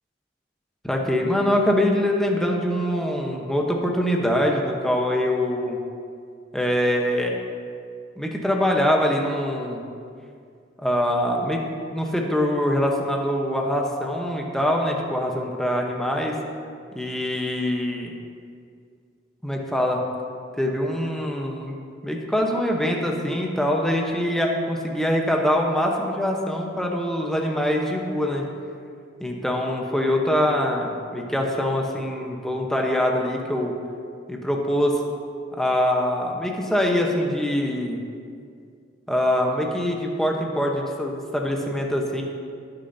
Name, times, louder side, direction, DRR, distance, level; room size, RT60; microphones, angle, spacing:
voice 1, 0.8-5.8 6.5-7.4 8.2-9.8 10.8-11.6 11.9-16.3 16.9-18.2 19.4-20.0 20.6-21.8 22.0-28.5 29.2-33.7 34.3-35.0 35.5-38.0 39.1-42.2, equal, 5° left, 0 dB, 1.0 m, -24 dB
19.0 x 6.8 x 2.8 m, 2.2 s
head